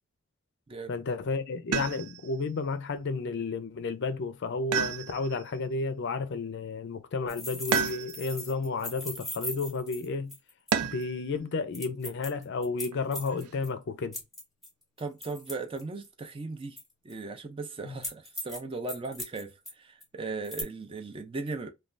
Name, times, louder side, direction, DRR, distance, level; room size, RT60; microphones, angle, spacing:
voice 1, 0.9-10.4 10.8-14.2 17.8-17.9, left 4 dB, 50° left, 0.4 m, -32 dB
sound 1, 1.7-2.4 4.7-5.5 7.7-8.4 10.7-11.2 12.9-13.5, right 7 dB, 85° right, 0.4 m, -31 dB
sound 2, 7.3-10.7 11.0-11.1 11.7-13.7 14.1-16.1 16.8-17.1 18.0-18.6 18.9-19.7 20.0-20.1 20.4-20.6, left 1 dB, ahead, 1.0 m, -39 dB
voice 2, 15.0-16.8 17.0-21.7, right 3 dB, 25° right, 0.4 m, -37 dB
3.2 x 2.2 x 2.4 m
head